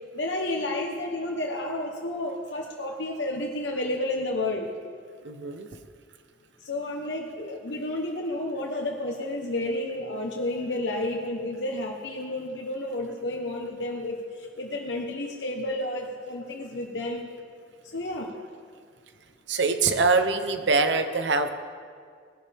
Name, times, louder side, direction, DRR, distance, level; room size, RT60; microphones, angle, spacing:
voice 1, 0.1-4.7 6.6-17.3 17.9-18.3, left 1 dB, 75° left, 0 dB, 1.1 m, -31 dB
voice 2, 5.2-5.7 19.5-21.5, right 4 dB, 75° right, 8 dB, 0.9 m, -23 dB
19.0 x 11.5 x 3.5 m, 2.1 s
head